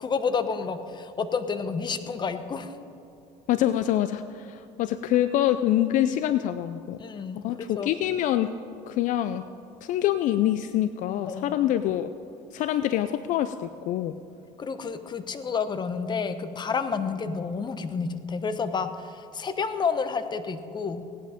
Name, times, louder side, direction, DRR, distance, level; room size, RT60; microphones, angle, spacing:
voice 1, 0.0-2.7 7.0-7.9 11.3-11.6 14.6-21.1, left 5 dB, 30° left, 10 dB, 1.0 m, -30 dB
voice 2, 3.5-7.0 7.4-8.5 8.9-9.4 9.8-12.1 12.5-14.1, left 12 dB, 60° left, 12 dB, 0.5 m, -25 dB
17.0 x 10.5 x 5.1 m, 2.6 s
supercardioid pair, 105°, 15 cm